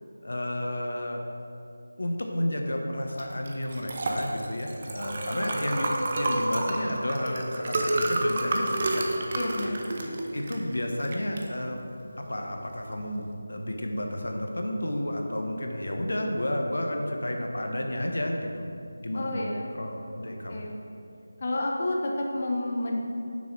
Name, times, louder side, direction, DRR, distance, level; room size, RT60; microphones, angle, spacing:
voice 1, 0.2-1.2 2.0-9.2 10.3-11.8 12.2-18.7 19.0-19.4 19.7-20.7, left 1 dB, 75° left, 2 dB, 0.8 m, -31 dB
Liquid, 3.1-13.3, right 2 dB, 35° right, 0.6 m, -30 dB
voice 2, 9.3-9.8 19.1-19.6 20.5-20.7 21.4-23.0, left 1 dB, 40° left, -1 dB, 0.6 m, -30 dB
7.0 x 6.2 x 3.1 m, 2.6 s
figure-of-eight pair, 165°, 0 cm